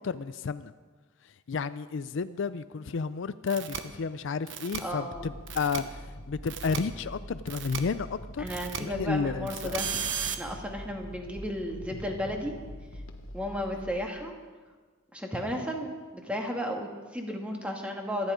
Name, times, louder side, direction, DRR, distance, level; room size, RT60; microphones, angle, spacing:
voice 1, 0.0-0.7 1.5-5.8 6.3-8.5 8.8-9.7, left 5 dB, 60° left, 14 dB, 0.4 m, -31 dB
sound 1, 3.5-3.8 4.5-4.8 5.5-5.8 6.5-6.8 7.5-7.8 8.5-8.8 9.5-10.4, right 8 dB, 60° right, 1.1 m, -34 dB
voice 2, 4.8-5.3 8.4-9.9 10.4-12.6 13.3-14.3 15.1-18.3, equal, 5° right, 1 dB, 2.0 m, -34 dB
sound 2, 5.1-14.0, left 1 dB, 75° left, 1.3 m, -44 dB
25.5 x 10.5 x 5.1 m, 1.4 s
head